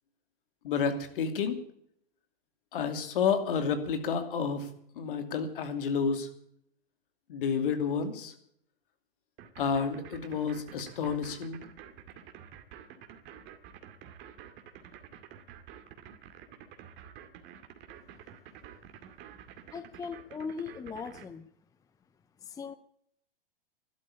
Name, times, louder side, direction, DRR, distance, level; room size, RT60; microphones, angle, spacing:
voice 1, 0.6-1.6 2.7-4.7 5.0-6.3 7.3-8.3 9.6-11.6, left 6 dB, 65° left, 8 dB, 2.7 m, -30 dB
sound 1, 9.4-21.3, right 10 dB, 40° right, 2.3 m, -49 dB
voice 2, 19.7-21.5 22.4-22.8, left 5 dB, 10° left, 12 dB, 0.7 m, -39 dB
12.5 x 12.0 x 8.6 m, 0.67 s
hypercardioid pair, 110°, 29 cm